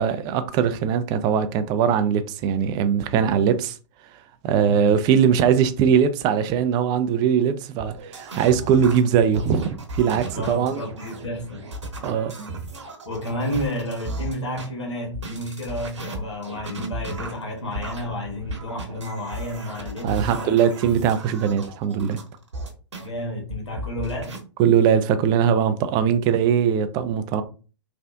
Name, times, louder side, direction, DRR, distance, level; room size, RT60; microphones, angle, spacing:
voice 1, 0.0-3.8 4.4-10.8 12.0-12.6 20.0-22.2 24.6-27.4, right 8 dB, 30° right, 0.3 m, -21 dB
sound 1, 7.8-14.7 15.1-23.1 23.5-24.4, right 1 dB, 75° right, 1.1 m, -35 dB
voice 2, 10.3-11.7 13.0-20.5 23.0-24.4, left 1 dB, 75° left, 1.3 m, -31 dB
3.4 x 2.4 x 2.3 m
figure-of-eight pair, 110°, 15 cm